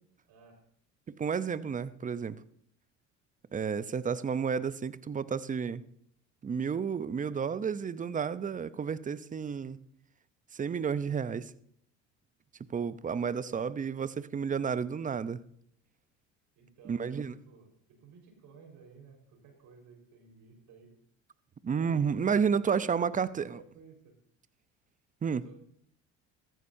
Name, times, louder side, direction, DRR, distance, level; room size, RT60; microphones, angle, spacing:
voice 1, 0.3-0.6 3.8-4.0 13.3-13.7 16.5-20.9 21.7-24.2 25.4-25.6, right 5 dB, 60° right, 3 dB, 4.7 m, -55 dB
voice 2, 1.1-2.4 3.5-5.8 6.4-9.8 10.5-11.5 12.7-15.4 16.8-17.4 21.6-23.6 25.2-25.4, right 6 dB, 25° right, 16 dB, 0.6 m, -31 dB
14.5 x 14.0 x 2.7 m, 0.66 s
supercardioid pair, 80°, 35 cm